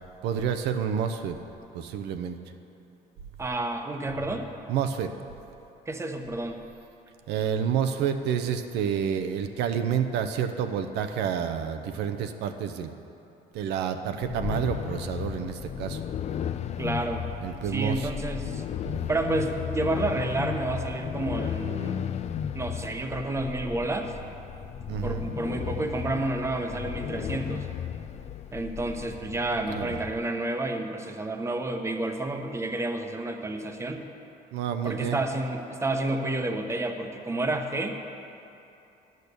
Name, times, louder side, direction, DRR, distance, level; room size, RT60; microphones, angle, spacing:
voice 1, 0.2-1.4 1.7-2.4 4.7-5.1 7.3-12.9 13.5-16.0 17.4-18.1 24.9-25.2 29.7-30.0 34.5-35.2, right 8 dB, 85° right, 7 dB, 0.7 m, -29 dB
voice 2, 3.4-4.5 5.9-6.6 16.8-17.3 17.6-18.6 19.1-22.0 22.5-24.1 25.0-27.7 28.5-34.0 34.8-38.0, right 2 dB, 15° right, 5 dB, 0.8 m, -30 dB
sound 1, 14.2-30.2, left 8 dB, 40° left, 0.4 m, -34 dB
10.5 x 6.6 x 6.7 m, 2.8 s
cardioid pair, 110°, 17 cm